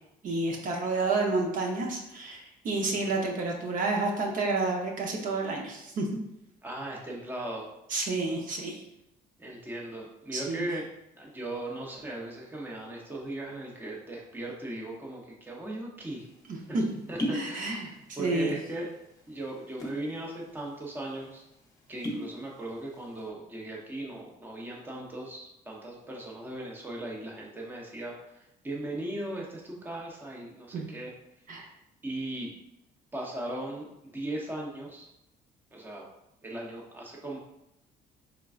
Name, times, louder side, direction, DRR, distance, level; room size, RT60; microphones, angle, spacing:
voice 1, 0.2-6.1 7.9-8.8 10.3-10.7 16.5-16.8 17.3-18.5 30.7-30.9 31.5-31.7, right 3 dB, 55° right, 0 dB, 0.7 m, -30 dB
voice 2, 6.6-7.7 9.4-10.9 11.2-16.3 16.7-16.8 17.1-17.9 18.2-18.9 19.3-21.4 21.9-31.1 32.0-32.5 33.1-35.1 35.7-36.1 36.4-37.4, right 1 dB, 10° right, -2 dB, 0.7 m, -38 dB
sound 1, 16.1-16.2 17.0-17.5 17.8-18.4 18.7-18.9 19.6-20.1 20.5-20.6 20.9-21.1 21.8-22.3 22.8-23.1, equal, 20° left, 0.8 m, -34 dB
3.7 x 3.4 x 2.4 m, 0.85 s
cardioid pair, 110°, 17 cm